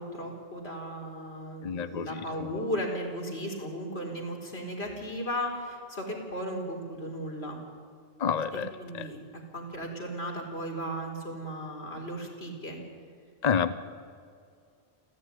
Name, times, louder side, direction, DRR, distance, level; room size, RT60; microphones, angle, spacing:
voice 1, 0.0-7.6 8.5-9.2 9.5-12.8, equal, 85° left, 1 dB, 4.6 m, -36 dB
voice 2, 1.6-2.2 8.2-9.1 13.4-13.7, left 7 dB, 45° left, 12 dB, 0.9 m, -29 dB
28.5 x 14.0 x 9.7 m, 2.2 s
omnidirectional pair, 1.0 m